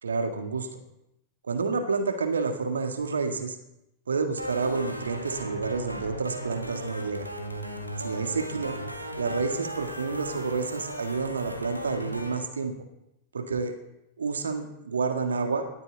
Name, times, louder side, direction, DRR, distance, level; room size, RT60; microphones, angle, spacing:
voice 1, 0.0-0.8 1.4-3.6 4.1-7.3 8.0-8.8 9.2-12.7 13.3-13.8 14.2-15.8, right 4 dB, 70° right, 7 dB, 1.8 m, -29 dB
sound 1, 4.4-12.4, right 1 dB, 90° right, 1.9 m, -36 dB
18.5 x 13.0 x 4.0 m, 0.86 s
figure-of-eight pair, 90°, 0 cm